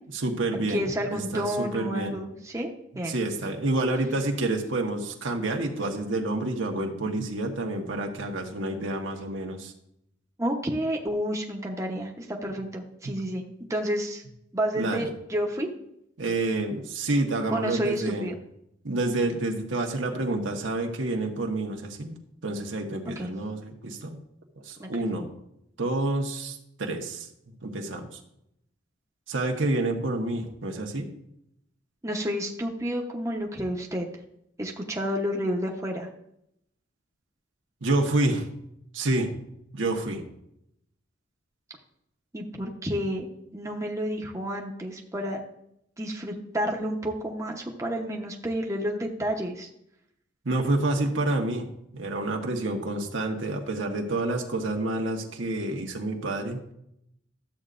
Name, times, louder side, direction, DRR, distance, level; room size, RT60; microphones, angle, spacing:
voice 1, 0.1-2.2 3.1-9.7 14.7-15.1 16.2-18.3 18.8-22.2 22.4-24.2 24.6-25.3 25.8-27.3 27.6-28.1 29.3-31.1 37.8-38.5 38.9-39.3 39.7-40.2 50.4-51.7 51.9-56.6, right 2 dB, 80° right, 2 dB, 1.3 m, -28 dB
voice 2, 0.7-3.1 3.4-3.6 10.4-13.4 13.7-14.2 14.5-15.7 17.5-18.3 23.2-23.3 24.8-24.9 32.0-34.1 34.6-36.1 42.3-45.4 46.0-49.7, equal, 15° right, 0 dB, 0.9 m, -30 dB
13.0 x 8.0 x 2.5 m, 0.77 s
head